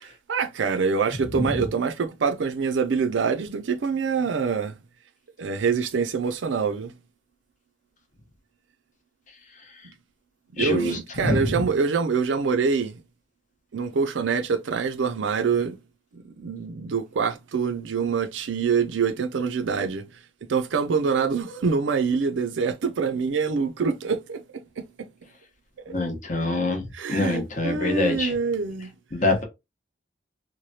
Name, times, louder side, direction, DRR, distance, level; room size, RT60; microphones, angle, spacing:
voice 1, 0.0-4.8 5.4-6.9 10.5-13.0 13.7-15.8 16.1-20.1 20.5-25.1 26.9-28.9, right 5 dB, 75° right, 0.4 m, -25 dB
voice 2, 10.6-10.9 11.2-11.6 25.9-26.8 27.1-28.3 29.1-29.4, left 2 dB, 40° left, 0.9 m, -24 dB
3.1 x 2.2 x 2.7 m
head